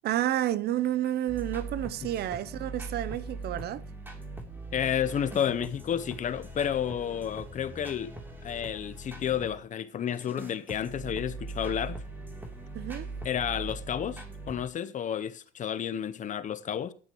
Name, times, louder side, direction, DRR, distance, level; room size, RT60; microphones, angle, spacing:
voice 1, 0.0-3.8 12.7-13.1, right 12 dB, 55° right, 0.7 m, -30 dB
sound 1, 1.3-9.6 10.1-14.6, right 2 dB, 10° right, 3.2 m, -41 dB
voice 2, 4.7-8.1 8.4-12.0 13.2-16.9, left 9 dB, 40° left, 0.8 m, -31 dB
16.5 x 11.0 x 3.1 m
cardioid pair, 105°, 20 cm